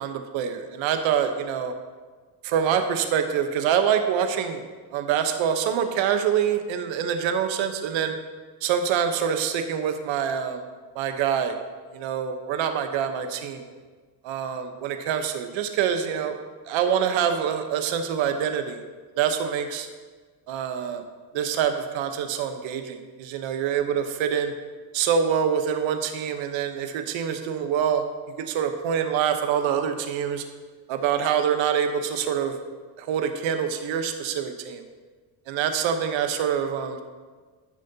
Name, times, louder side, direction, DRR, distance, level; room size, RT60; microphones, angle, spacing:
voice 1, 0.0-1.7 2.4-4.6 4.9-8.2 8.6-10.6 10.9-11.6 11.9-13.6 14.2-16.4 16.7-18.8 19.2-19.9 20.5-21.0 21.3-24.5 24.9-28.1 28.4-30.4 30.9-32.6 33.0-34.8 35.5-37.0, right 8 dB, 70° right, 7 dB, 1.1 m, -25 dB
14.0 x 6.4 x 2.8 m, 1.5 s
supercardioid pair, 65°, 48 cm